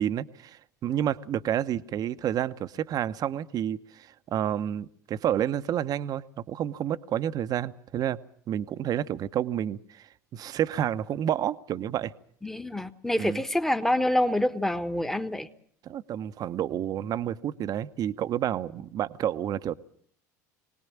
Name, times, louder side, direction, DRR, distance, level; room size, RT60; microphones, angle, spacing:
voice 1, 0.0-8.2 8.5-12.1 13.2-13.4 15.8-19.7, right 10 dB, 40° right, 12 dB, 0.9 m, -30 dB
voice 2, 12.4-15.5, left 1 dB, 5° left, 9 dB, 1.3 m, -26 dB
23.0 x 19.0 x 7.3 m, 0.63 s
hypercardioid pair, 80°, 9 cm